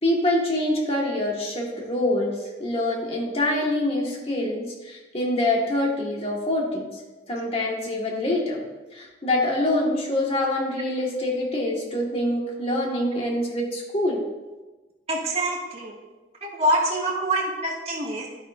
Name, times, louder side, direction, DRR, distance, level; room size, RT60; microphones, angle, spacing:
voice 1, 0.0-6.9 7.3-8.6 8.9-14.2, left 1 dB, 30° left, -2 dB, 1.9 m, -25 dB
voice 2, 15.1-15.9 16.4-18.3, right 1 dB, 35° right, -4 dB, 2.3 m, -25 dB
11.0 x 10.5 x 2.7 m, 1.2 s
head